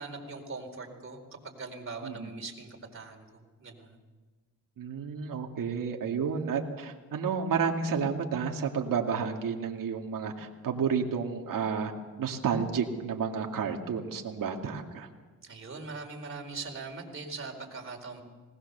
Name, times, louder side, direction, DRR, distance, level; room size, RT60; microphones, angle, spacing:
voice 1, 0.0-4.0 15.4-18.2, right 3 dB, 35° right, 1 dB, 4.2 m, -41 dB
voice 2, 2.0-2.3 4.8-11.9 12.2-15.1, right 6 dB, 65° right, 2 dB, 2.3 m, -31 dB
20.0 x 19.5 x 6.9 m, 1.3 s
cardioid pair, 90°, 36 cm